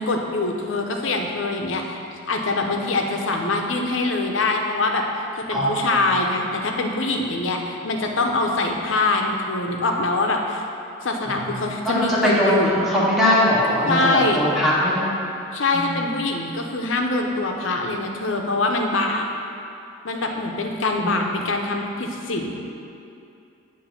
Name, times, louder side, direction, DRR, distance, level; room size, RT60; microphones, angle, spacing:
voice 1, 0.0-2.0 2.3-5.0 5.4-10.6 11.0-12.8 13.9-14.4 15.5-19.2 20.0-22.5, left 2 dB, 75° left, 2 dB, 0.7 m, -24 dB
voice 2, 5.5-6.0 11.2-11.5 11.8-15.0 15.8-16.0 21.0-21.2, left 1 dB, ahead, -8 dB, 1.3 m, -21 dB
8.8 x 3.2 x 5.8 m, 2.7 s
head